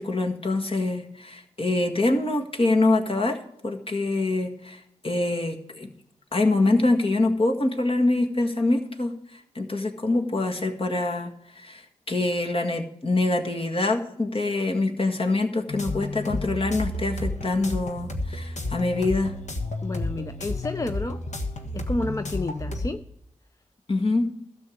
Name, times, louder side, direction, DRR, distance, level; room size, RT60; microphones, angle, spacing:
voice 1, 0.0-3.4 3.6-5.9 6.3-19.3 23.9-24.3, left 2 dB, 45° left, 4 dB, 1.8 m, -25 dB
sound 1, 15.7-22.9, left 1 dB, 70° left, 1.4 m, -31 dB
voice 2, 19.8-21.2 21.7-23.0, left 2 dB, 25° left, 10 dB, 0.6 m, -30 dB
12.5 x 6.6 x 8.0 m, 0.76 s
cardioid pair, 50°, 13 cm